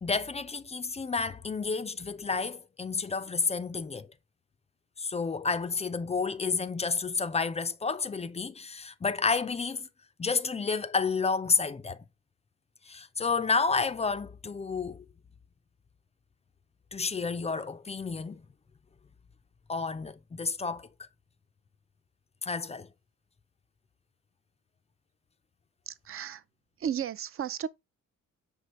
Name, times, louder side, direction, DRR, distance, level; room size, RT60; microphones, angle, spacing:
voice 1, 0.0-4.1 5.0-9.9 10.2-12.0 12.9-15.0 16.9-18.4 19.7-20.9 22.4-22.9, left 4 dB, 20° left, 0.4 m, -30 dB
voice 2, 25.9-26.4 26.8-27.7, right 9 dB, 45° right, 0.4 m, -34 dB
5.4 x 3.3 x 2.9 m
cardioid pair, 80°, 32 cm